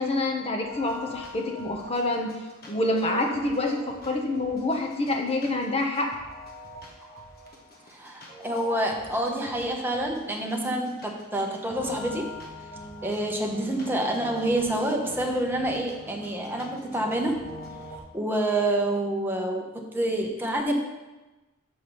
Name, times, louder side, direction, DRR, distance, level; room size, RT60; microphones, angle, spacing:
voice 1, 0.0-2.3 2.7-6.1, left 2 dB, 30° left, 2 dB, 1.0 m, -27 dB
sound 1, 0.6-18.0, equal, 45° left, 1.4 m, -43 dB
voice 2, 7.9-12.3 13.0-17.6 18.1-20.7, right 1 dB, 10° right, 0 dB, 1.0 m, -28 dB
6.8 x 4.9 x 5.5 m, 1.1 s
head